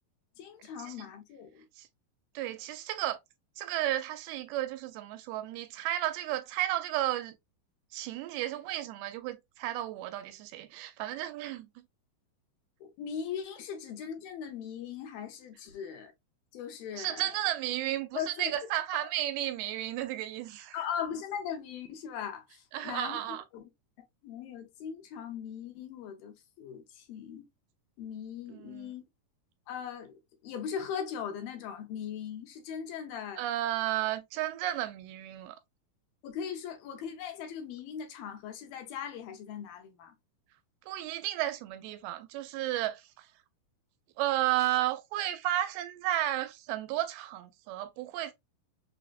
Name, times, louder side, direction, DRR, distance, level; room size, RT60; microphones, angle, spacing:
voice 1, 0.4-1.7 12.8-16.1 16.5-17.3 18.1-18.6 18.9-19.1 20.7-23.6 24.2-27.5 28.0-29.0 29.7-33.4 36.2-40.1, left 8 dB, 75° left, 2.5 m, -39 dB
voice 2, 2.4-3.2 3.6-7.4 7.9-11.7 16.9-20.8 22.7-23.4 28.5-28.9 33.4-35.6 40.9-43.3 44.2-48.3, right 14 dB, 85° right, 2.6 m, -33 dB
6.3 x 2.1 x 2.3 m
omnidirectional pair, 4.3 m